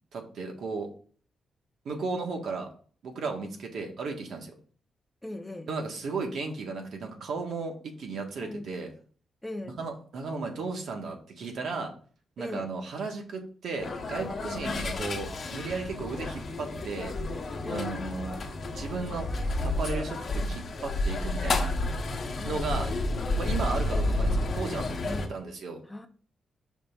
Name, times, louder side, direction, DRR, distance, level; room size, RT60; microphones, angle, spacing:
voice 1, 0.1-0.9 1.8-2.7 3.0-4.5 5.7-8.9 9.8-11.9 12.4-17.1 17.7-18.4 18.7-19.3 19.6-21.7 22.4-22.9 23.4-24.9 25.3-25.8, right 4 dB, 70° right, 3 dB, 1.4 m, -35 dB
voice 2, 5.2-5.7 8.4-8.7 9.4-9.8 12.4-12.7 14.6-14.8 17.6-18.0 22.4-22.6 25.0-25.3 25.8-26.1, left 1 dB, 5° left, 6 dB, 0.7 m, -39 dB
sound 1, 13.8-25.3, left 2 dB, 45° left, 1.0 m, -31 dB
5.3 x 3.4 x 5.2 m, 0.43 s
wide cardioid pair, 145°, 0 cm